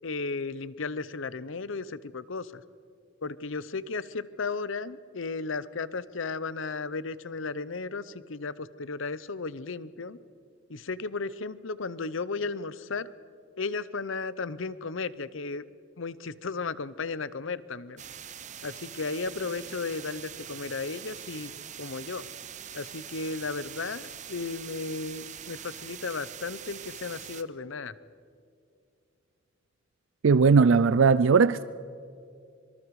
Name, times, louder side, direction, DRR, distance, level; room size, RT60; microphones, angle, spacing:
voice 1, 0.0-2.6 3.2-10.2 10.7-13.1 13.6-15.6 16.0-18.0 18.6-21.5 21.8-22.3 22.7-27.9, left 4 dB, 75° left, 0.8 m, -34 dB
sound 1, 18.0-27.4, right 9 dB, 35° right, 0.8 m, -43 dB
voice 2, 30.2-31.6, right 5 dB, 75° right, 0.5 m, -19 dB
25.5 x 24.0 x 4.8 m
head